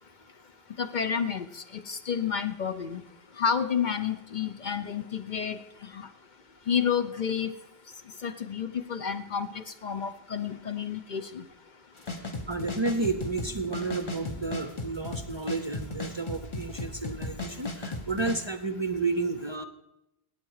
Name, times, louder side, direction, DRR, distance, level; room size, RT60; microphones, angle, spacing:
voice 1, 0.8-3.0 3.4-5.6 5.9-6.1 6.7-7.5 8.2-11.4, left 7 dB, 50° left, 11 dB, 0.7 m, -30 dB
sound 1, 12.0-18.4, left 3 dB, 30° left, 1.2 m, -36 dB
voice 2, 12.5-19.6, right 3 dB, 30° right, 9 dB, 0.6 m, -31 dB
16.5 x 8.9 x 4.8 m, 0.86 s
omnidirectional pair, 1.1 m